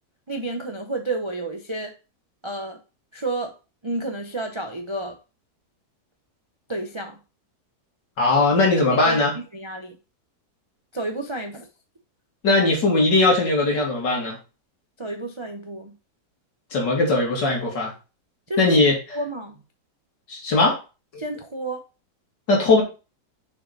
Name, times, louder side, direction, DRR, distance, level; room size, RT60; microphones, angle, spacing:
voice 1, 0.3-1.9 2.4-2.8 3.1-3.5 3.8-5.2 6.7-7.2 8.9-9.2 9.5-10.0 10.9-11.7 15.0-15.9 18.5-18.8 19.1-19.6 21.2-21.8, right 2 dB, 45° right, 0.3 m, -30 dB
voice 2, 8.2-9.3 12.4-14.4 16.7-17.9 18.6-19.0 20.3-20.8 21.1-21.2 22.5-22.8, left 2 dB, 85° left, 2.9 m, -19 dB
6.3 x 4.6 x 4.0 m
omnidirectional pair, 1.9 m